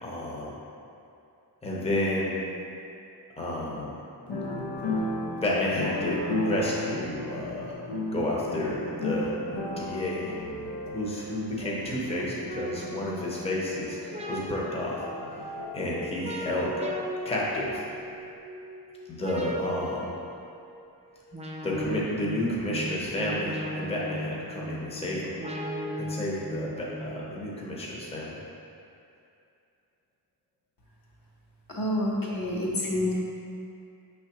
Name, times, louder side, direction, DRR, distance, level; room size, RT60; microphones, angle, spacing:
voice 1, 0.0-0.5 1.6-2.4 3.4-4.0 5.4-7.8 8.1-10.3 10.9-15.0 15.7-16.7 17.2-17.8 19.1-20.1 21.6-25.4 26.0-28.4, left 1 dB, 15° left, -5 dB, 0.7 m, -31 dB
sound 1, 4.3-17.9 18.2-18.3, left 1 dB, 75° left, 0.6 m, -35 dB
sound 2, 12.5-27.4, equal, 15° right, 0.4 m, -38 dB
voice 2, 31.7-33.1, left 1 dB, 55° left, -5 dB, 0.9 m, -28 dB
5.4 x 3.3 x 2.9 m, 2.6 s
wide cardioid pair, 65°, 41 cm